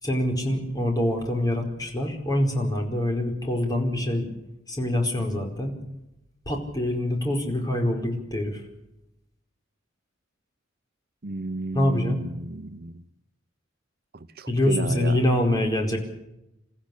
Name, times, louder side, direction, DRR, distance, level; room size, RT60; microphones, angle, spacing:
voice 1, 0.0-4.3 4.7-5.7 6.5-8.6 11.7-12.2 14.5-16.0, left 1 dB, 20° left, 2 dB, 4.8 m, -25 dB
voice 2, 11.2-13.0 14.1-15.2, right 2 dB, 55° right, 11 dB, 0.9 m, -32 dB
29.0 x 14.5 x 8.5 m, 0.87 s
head